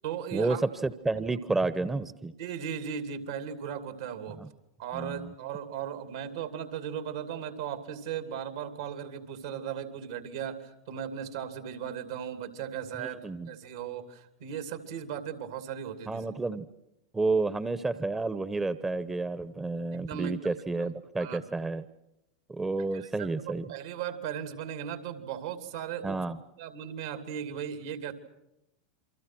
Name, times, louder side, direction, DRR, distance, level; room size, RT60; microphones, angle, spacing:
voice 1, 0.0-0.6 1.1-1.2 2.4-4.4 4.8-16.3 19.9-20.4 21.2-21.5 22.9-23.3 23.7-26.2 26.6-28.1, right 8 dB, 70° right, 8 dB, 2.8 m, -37 dB
voice 2, 0.8-2.3 4.4-4.5 4.9-5.3 13.0-13.5 16.1-16.7 17.1-21.8 22.5-23.7 26.0-26.4, right 3 dB, 15° right, 14 dB, 1.0 m, -30 dB
28.0 x 24.5 x 6.2 m, 0.88 s
hypercardioid pair, 95°, 2 cm